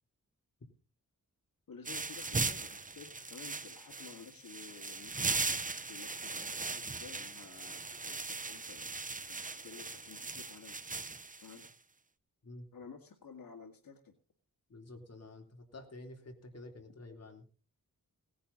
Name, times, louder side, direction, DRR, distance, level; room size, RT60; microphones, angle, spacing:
voice 1, 1.7-5.6 5.9-11.7 12.7-14.1, left 5 dB, 75° left, 2 dB, 2.1 m, -53 dB
sound 1, 1.9-11.7, right 3 dB, 25° right, 0.8 m, -39 dB
voice 2, 14.7-17.5, left 2 dB, 45° left, 2 dB, 3.5 m, -50 dB
18.5 x 10.0 x 4.1 m, 0.39 s
wide cardioid pair, 125°, 35 cm